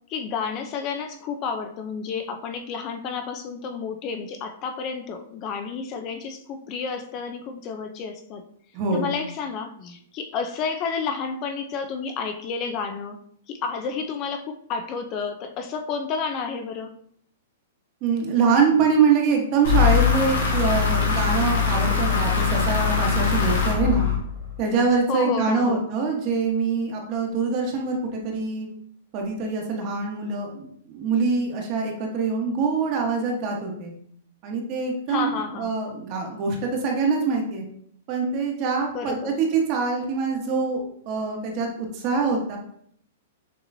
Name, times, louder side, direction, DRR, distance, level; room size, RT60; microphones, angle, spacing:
voice 1, 0.1-8.4 8.9-13.2 13.5-16.9 25.1-25.9 35.1-35.8 38.9-39.4, left 5 dB, 35° left, 6 dB, 0.5 m, -30 dB
voice 2, 8.7-9.1 18.0-24.0 24.6-28.7 29.1-33.9 34.4-37.6 38.1-42.6, right 4 dB, 40° right, 1 dB, 1.2 m, -24 dB
sound 1, 19.6-24.6, left 6 dB, 85° left, 1.5 m, -22 dB
6.6 x 2.9 x 2.7 m, 0.66 s
hypercardioid pair, 135°, 0 cm